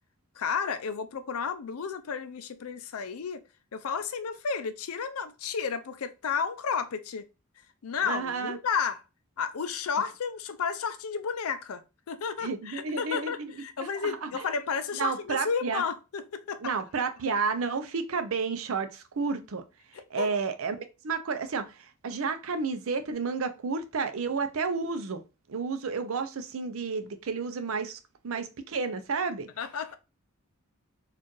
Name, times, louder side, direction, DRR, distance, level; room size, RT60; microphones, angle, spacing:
voice 1, 0.4-3.4 3.7-7.3 7.8-9.0 9.4-16.7 19.9-20.4 29.6-30.0, left 6 dB, 80° left, 0.5 m, -32 dB
voice 2, 8.0-8.6 12.4-13.5 13.8-14.5 15.0-15.8 16.6-19.6 20.1-25.2 25.5-29.5, right 4 dB, 70° right, 0.5 m, -31 dB
4.3 x 2.5 x 3.0 m
head